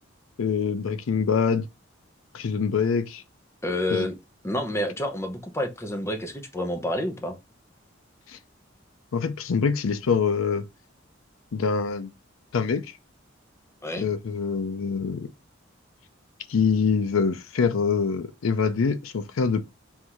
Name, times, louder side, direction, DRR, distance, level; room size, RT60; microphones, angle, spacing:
voice 1, 0.4-1.7 2.3-3.2 3.9-4.1 8.3-8.4 9.1-10.7 11.5-12.1 12.5-13.0 14.0-15.3 16.5-19.6, left 5 dB, 85° left, 0.5 m, -25 dB
voice 2, 3.6-4.1 4.4-7.4 13.8-14.1, left 1 dB, 15° left, 0.7 m, -29 dB
3.6 x 2.6 x 4.5 m
head